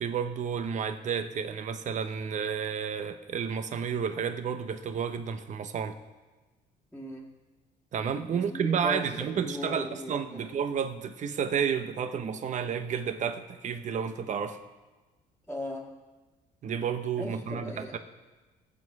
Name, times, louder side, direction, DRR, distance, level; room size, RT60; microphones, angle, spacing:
voice 1, 0.0-6.0 7.9-14.6 16.6-18.0, right 7 dB, 45° right, 9 dB, 1.0 m, -31 dB
voice 2, 6.9-7.3 8.3-10.5 15.5-16.0 17.2-18.0, left 1 dB, 5° left, -7 dB, 1.9 m, -38 dB
19.5 x 7.5 x 4.8 m, 1.2 s
cardioid pair, 110°, 17 cm